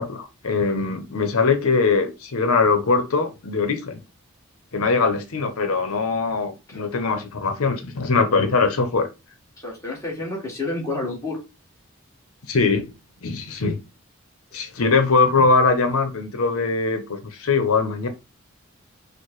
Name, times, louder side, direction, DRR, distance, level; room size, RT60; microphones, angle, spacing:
voice 1, 0.0-4.0 4.7-9.1 12.5-12.9 13.2-13.8 14.5-18.1, left 4 dB, 90° left, 0.8 m, -21 dB
voice 2, 9.6-11.4 14.5-14.7, left 2 dB, 15° left, 1.6 m, -30 dB
4.6 x 2.2 x 4.6 m
head